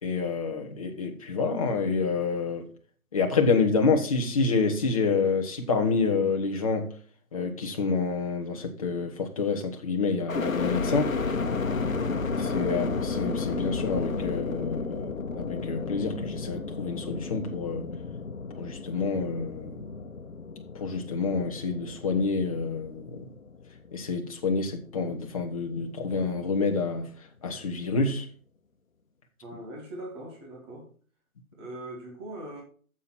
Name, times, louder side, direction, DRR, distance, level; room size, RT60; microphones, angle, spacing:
voice 1, 0.0-2.7 3.1-6.9 7.3-11.1 12.4-17.9 18.6-19.8 20.7-23.2 23.9-27.1 27.4-28.3, left 4 dB, 25° left, 1.3 m, -28 dB
sound 1, 10.3-24.3 24.8-25.5, left 4 dB, 65° left, 1.3 m, -32 dB
voice 2, 29.4-30.9 31.6-32.6, right 1 dB, 20° right, 2.3 m, -41 dB
9.1 x 7.5 x 4.3 m
figure-of-eight pair, 155°, 43 cm